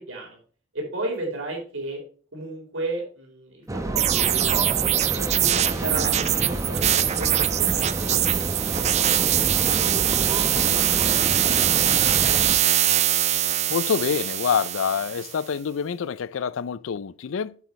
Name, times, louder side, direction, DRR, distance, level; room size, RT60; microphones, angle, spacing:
voice 1, 0.1-0.4 0.7-2.0 2.3-4.7 5.1-8.2 11.1-12.2, right 2 dB, 75° right, 4.0 m, -34 dB
sound 1, 3.7-12.6, right 1 dB, 15° right, 0.9 m, -29 dB
sound 2, 4.0-15.4, right 12 dB, 35° right, 0.4 m, -23 dB
voice 2, 13.7-17.6, left 7 dB, 70° left, 0.4 m, -26 dB
8.3 x 8.1 x 3.2 m
head